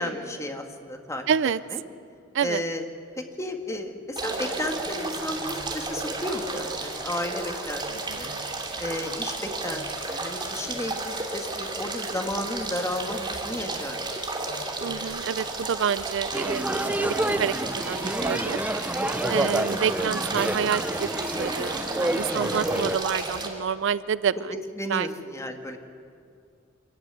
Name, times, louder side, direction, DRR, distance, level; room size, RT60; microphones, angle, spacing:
voice 1, 0.0-1.3 1.7-1.8 2.4-2.9 3.2-7.8 8.2-8.3 8.8-14.1 19.4-19.7 22.5-22.8 24.5-25.8, left 1 dB, 15° left, 4 dB, 1.9 m, -33 dB
voice 2, 1.3-1.6 2.3-2.6 7.9-8.4 14.8-18.6 19.3-24.3 24.9-25.1, right 7 dB, 65° right, 17 dB, 0.4 m, -28 dB
sound 1, 4.2-23.5, right 2 dB, 25° right, 2.7 m, -33 dB
sound 2, 16.3-23.0, right 1 dB, 10° right, 0.6 m, -28 dB
25.5 x 14.5 x 9.6 m, 2.4 s
head